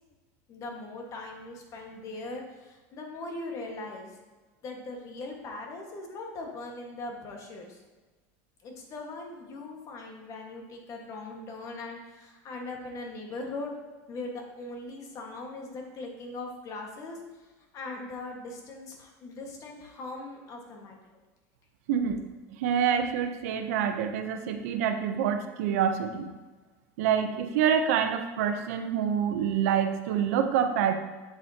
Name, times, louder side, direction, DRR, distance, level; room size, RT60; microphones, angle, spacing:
voice 1, 0.5-4.2 4.6-7.8 8.6-13.8 14.1-21.0, left 2 dB, 40° left, 1 dB, 1.6 m, -40 dB
voice 2, 21.9-22.2 22.6-26.3 27.0-30.9, right 8 dB, 80° right, 7 dB, 0.8 m, -26 dB
8.0 x 7.2 x 2.9 m, 1.3 s
supercardioid pair, 125°, 8 cm